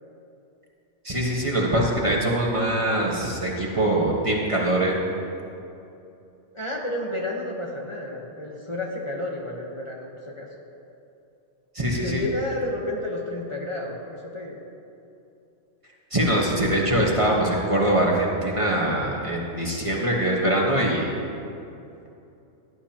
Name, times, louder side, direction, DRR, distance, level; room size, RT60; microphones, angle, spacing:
voice 1, 1.0-5.0 11.7-12.2 16.1-21.1, right 1 dB, 30° right, -3 dB, 1.4 m, -23 dB
voice 2, 6.5-10.1 10.4-10.5 12.0-14.6, left 1 dB, 25° left, -3 dB, 1.1 m, -31 dB
17.5 x 11.0 x 2.9 m, 2.7 s
omnidirectional pair, 1.2 m